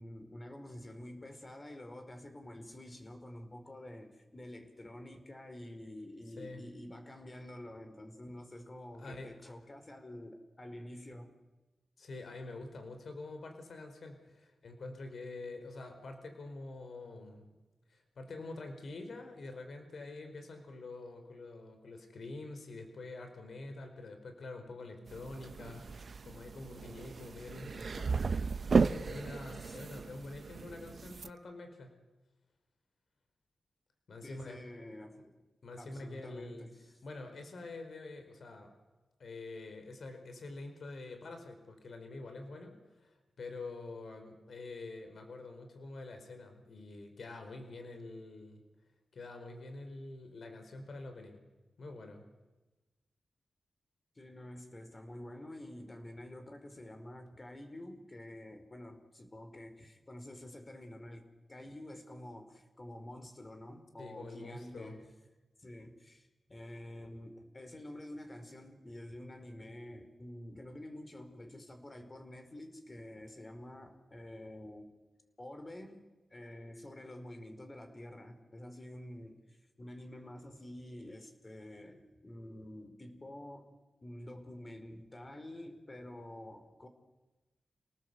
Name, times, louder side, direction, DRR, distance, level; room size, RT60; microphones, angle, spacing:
voice 1, 0.0-11.3 29.5-29.8 34.2-35.4 35.8-36.8 54.1-65.0 65.6-74.9 75.4-76.0 76.3-83.7 84.0-86.9, left 1 dB, 35° left, 7 dB, 4.8 m, -48 dB
voice 2, 9.0-9.5 12.0-17.5 17.9-28.3 28.7-32.0 34.1-34.6 35.6-36.7 37.0-38.7 39.2-48.6 49.1-51.4 51.8-52.2 64.0-65.0, left 2 dB, 75° left, 6 dB, 4.6 m, -46 dB
sound 1, 25.1-31.3, right 4 dB, 60° right, 0.8 m, -34 dB
29.0 x 18.5 x 8.2 m, 1.1 s
cardioid pair, 55°, 0 cm